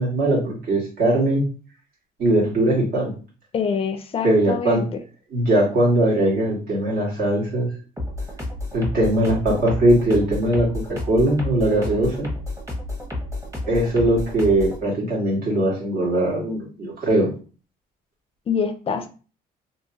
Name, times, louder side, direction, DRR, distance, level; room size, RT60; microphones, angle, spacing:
voice 1, 0.0-1.4 2.2-3.1 4.2-4.9 5.3-7.7 8.7-12.3 13.7-17.3, right 1 dB, 60° right, -3 dB, 1.6 m, -20 dB
voice 2, 3.5-5.0 18.5-19.1, left 6 dB, 35° left, 7 dB, 0.4 m, -25 dB
sound 1, 8.0-14.8, left 2 dB, 20° right, 1.1 m, -30 dB
2.7 x 2.7 x 2.7 m, 0.37 s
cardioid pair, 110°, 17 cm